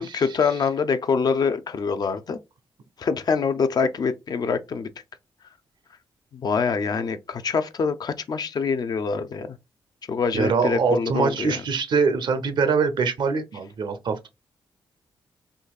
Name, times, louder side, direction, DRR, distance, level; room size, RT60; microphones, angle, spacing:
voice 1, 0.0-2.4 3.0-4.9 6.3-9.6 10.1-11.6, left 5 dB, 50° left, 0.5 m, -25 dB
voice 2, 10.3-14.3, right 5 dB, 65° right, 0.7 m, -23 dB
3.8 x 2.6 x 2.3 m
cardioid pair, 90°, 9 cm